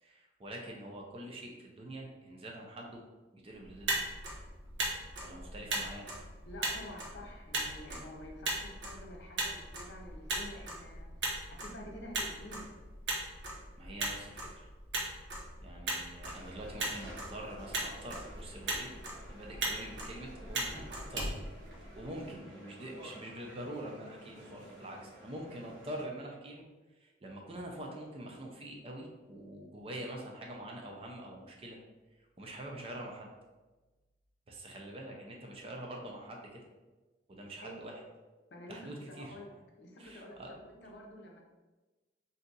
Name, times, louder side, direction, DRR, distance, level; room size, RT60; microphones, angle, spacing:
voice 1, 0.0-3.0 3.3-3.9 5.2-6.1 13.8-14.7 15.6-18.9 19.2-21.3 21.8-26.6 27.0-31.8 32.4-33.3 34.5-36.6 37.3-38.0 38.7-39.4 40.0-40.5, right 1 dB, 30° right, 0 dB, 0.5 m, -45 dB
Motor vehicle (road), 3.6-22.2, right 2 dB, 65° right, 0.8 m, -39 dB
voice 2, 6.5-11.1 11.5-12.7 37.6-37.7 38.5-41.4, left 1 dB, 65° left, 0 dB, 0.6 m, -49 dB
sound 1, 16.2-26.0, equal, 90° right, 1.1 m, -53 dB
2.7 x 2.4 x 3.8 m, 1.2 s
head